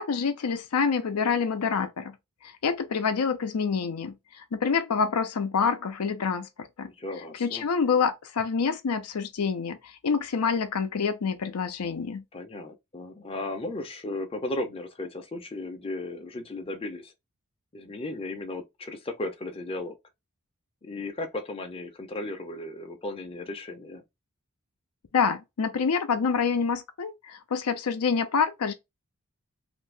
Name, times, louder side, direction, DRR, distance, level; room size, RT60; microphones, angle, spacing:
voice 1, 0.0-2.1 2.4-6.9 7.4-12.2 25.1-28.7, left 5 dB, 75° left, 0.5 m, -27 dB
voice 2, 6.8-7.7 12.3-17.1 17.7-20.0 20.8-24.0, left 2 dB, 25° left, 0.6 m, -35 dB
2.7 x 2.6 x 3.2 m
head